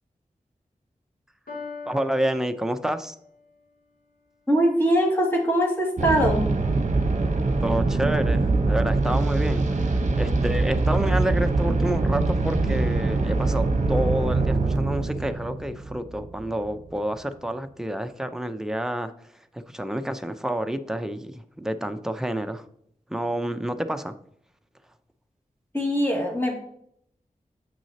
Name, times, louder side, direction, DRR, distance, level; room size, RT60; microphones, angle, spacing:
Piano, 1.5-3.4, left 4 dB, 75° left, 2.3 m, -41 dB
voice 1, 1.9-3.2 7.6-22.6 23.1-24.1, right 1 dB, 5° right, 8 dB, 0.6 m, -29 dB
voice 2, 4.5-6.5 25.7-26.6, equal, 15° left, -1 dB, 2.1 m, -22 dB
sound 1, 6.0-16.7, right 3 dB, 55° right, 0.9 m, -23 dB
8.2 x 6.1 x 2.8 m, 0.67 s
wide cardioid pair, 85°, 15 cm